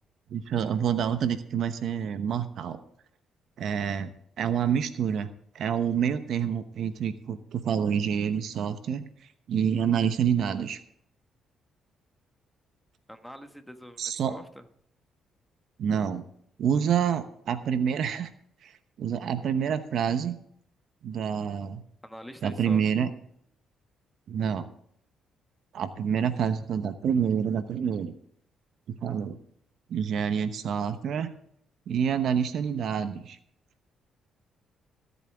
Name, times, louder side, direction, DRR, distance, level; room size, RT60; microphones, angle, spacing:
voice 1, 0.3-2.8 3.6-4.1 4.4-5.3 5.5-9.0 9.5-10.8 14.0-14.4 15.8-16.2 16.6-18.3 18.6-18.7 19.0-20.4 21.0-21.8 22.4-23.1 24.3-24.7 25.7-28.1 29.0-29.4 29.9-31.3 31.9-33.4, right 8 dB, 70° right, 10 dB, 1.0 m, -27 dB
voice 2, 13.1-14.7 22.0-22.8, equal, ahead, 7 dB, 1.4 m, -44 dB
21.5 x 8.3 x 3.5 m, 0.67 s
cardioid pair, 90°, 0 cm